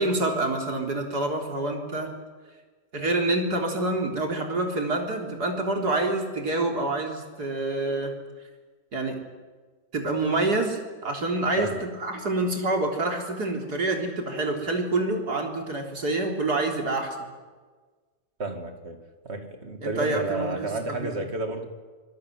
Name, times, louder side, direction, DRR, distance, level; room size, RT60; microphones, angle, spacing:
voice 1, 0.0-2.1 2.9-8.1 8.9-9.2 9.9-11.7 12.0-17.3 19.8-21.1, right 2 dB, 65° right, 2 dB, 4.2 m, -27 dB
voice 2, 11.6-11.9 18.4-21.7, right 3 dB, 40° right, 6 dB, 2.8 m, -31 dB
25.5 x 21.5 x 9.4 m, 1.4 s
omnidirectional pair, 1.8 m